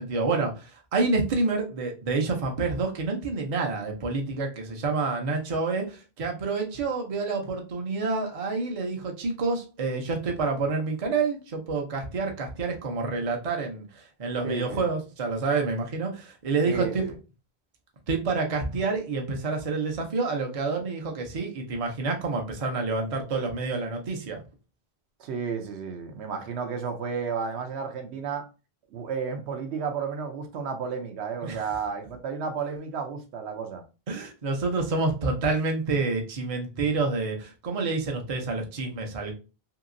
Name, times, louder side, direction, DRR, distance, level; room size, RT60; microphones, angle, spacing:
voice 1, 0.0-17.1 18.1-24.4 31.4-31.7 34.1-39.3, right 3 dB, 40° right, 0.6 m, -28 dB
voice 2, 14.4-14.9 16.7-17.1 25.2-28.4 28.9-33.8, right 6 dB, 80° right, 0.9 m, -32 dB
2.8 x 2.8 x 2.5 m
omnidirectional pair, 1.1 m